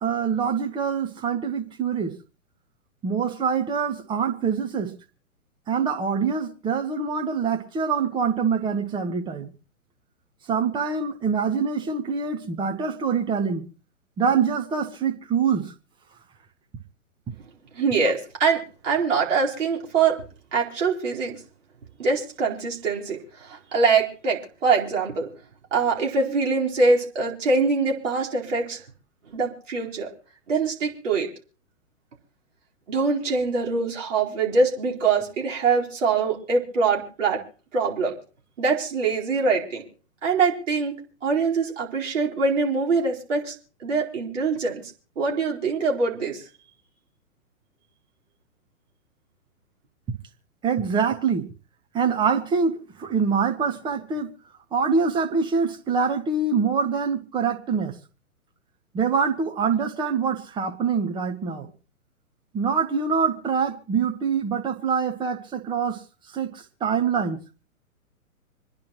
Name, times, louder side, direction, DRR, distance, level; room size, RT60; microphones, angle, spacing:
voice 1, 0.0-2.2 3.0-5.0 5.7-9.5 10.5-13.7 14.2-15.7 50.6-51.5 51.9-54.3 54.7-58.0 58.9-61.7 62.5-66.0 66.3-67.4, right 6 dB, 10° right, 0.8 m, -25 dB
voice 2, 17.7-20.2 20.5-21.4 22.0-25.3 25.7-28.8 29.3-30.1 30.5-31.3 32.9-37.4 37.7-38.1 38.6-39.8 40.2-40.9 41.2-43.5 43.8-44.8 45.2-46.4, right 4 dB, 60° right, 4.4 m, -23 dB
27.0 x 10.5 x 3.0 m
figure-of-eight pair, 120°, 43 cm